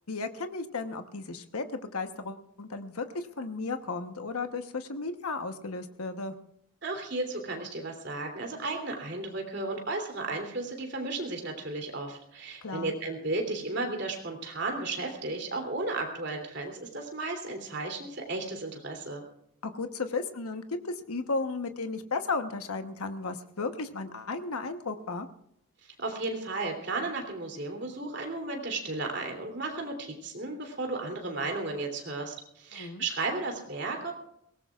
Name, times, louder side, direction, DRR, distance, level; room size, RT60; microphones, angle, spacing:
voice 1, 0.1-6.3 12.6-12.9 19.6-25.3 32.7-33.0, left 3 dB, 90° left, 7 dB, 1.1 m, -34 dB
voice 2, 6.8-19.2 25.8-34.1, right 2 dB, 50° right, 3 dB, 3.1 m, -34 dB
22.5 x 18.5 x 2.4 m, 0.74 s
head